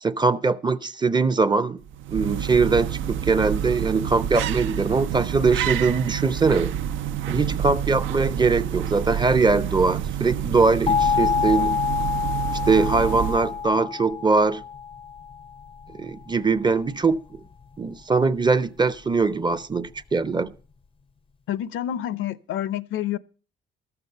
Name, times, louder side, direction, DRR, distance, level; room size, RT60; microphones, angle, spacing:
voice 1, 0.0-1.8 2.1-6.7 7.3-11.8 12.7-14.6 15.9-17.4 17.8-20.5, right 4 dB, 20° right, 0.6 m, -22 dB
sound 1, 1.8-13.7, right 9 dB, 80° right, 0.5 m, -28 dB
sound 2, 10.9-15.6, left 7 dB, 25° left, 0.5 m, -26 dB
voice 2, 21.5-23.2, left 11 dB, 80° left, 0.7 m, -28 dB
13.0 x 6.9 x 6.6 m
cardioid pair, 90°, 20 cm